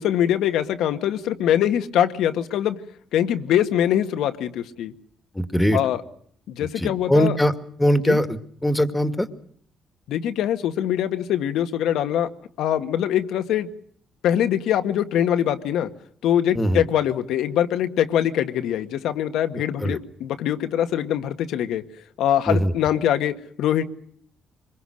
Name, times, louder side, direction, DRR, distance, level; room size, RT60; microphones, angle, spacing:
voice 1, 0.0-2.8 3.1-4.9 5.7-6.0 6.5-7.4 8.1-8.2 10.1-12.3 12.6-13.7 14.2-15.9 16.2-21.8 22.2-23.8, left 10 dB, 85° left, 9 dB, 1.7 m, -23 dB
voice 2, 5.4-5.8 6.6-7.5 7.8-9.3 16.5-16.8 19.5-20.0 22.5-22.7, equal, 10° left, 10 dB, 2.1 m, -21 dB
25.0 x 22.0 x 6.5 m, 0.62 s
cardioid pair, 90°, 0 cm